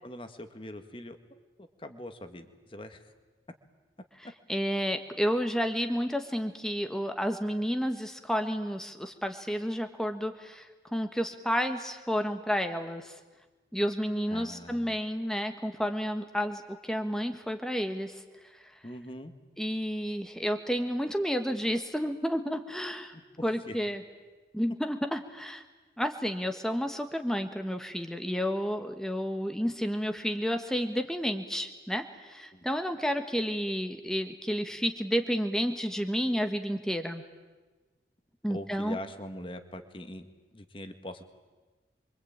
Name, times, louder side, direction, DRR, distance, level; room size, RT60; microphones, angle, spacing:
voice 1, 0.0-1.2 1.6-3.1 4.2-4.3 14.3-15.0 18.8-19.3 23.1-23.8 32.5-32.6 38.5-40.3 40.5-41.2, left 1 dB, 30° left, 8 dB, 1.8 m, -42 dB
voice 2, 4.5-13.1 13.7-18.2 19.6-23.1 23.4-24.0 24.5-25.6 26.0-37.2 38.4-39.0, equal, 5° left, 6 dB, 1.4 m, -31 dB
27.5 x 24.0 x 8.8 m, 1.3 s
head